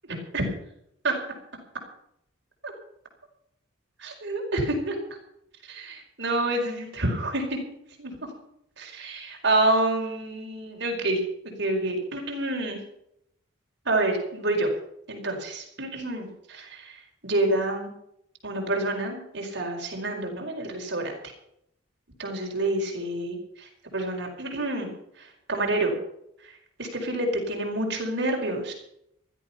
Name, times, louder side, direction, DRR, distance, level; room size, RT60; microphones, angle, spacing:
voice 1, 4.0-5.0 5.6-7.6 8.0-8.3 8.8-12.8 13.8-14.7 15.1-17.0 17.2-17.9 18.4-21.1 22.2-25.9 26.4-26.5 26.8-28.7, right 2 dB, 60° right, 0 dB, 4.9 m, -28 dB
16.0 x 13.0 x 5.8 m, 0.75 s
head